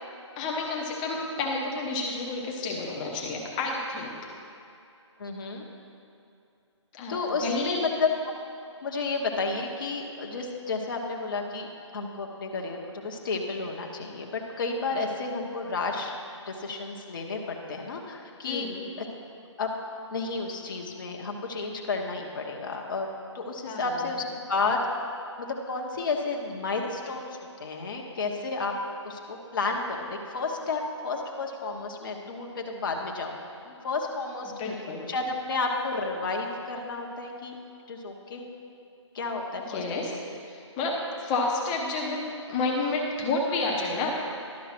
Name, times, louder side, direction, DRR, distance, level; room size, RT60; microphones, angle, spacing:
voice 1, 0.4-4.2 6.9-7.8 18.5-18.9 23.7-24.1 34.6-35.1 39.7-40.2 40.5-44.1, left 3 dB, 15° left, -1 dB, 0.8 m, -30 dB
voice 2, 5.2-5.6 7.1-8.1 8.8-11.7 11.9-16.1 16.5-18.7 19.0-19.1 19.6-19.8 20.1-24.8 25.4-27.3 27.6-28.7 29.0-33.4 33.7-34.5 35.1-37.6 37.9-38.4 39.1-39.8, left 3 dB, 45° left, 0 dB, 1.0 m, -31 dB
11.5 x 5.2 x 5.9 m, 2.7 s
hypercardioid pair, 165°, 16 cm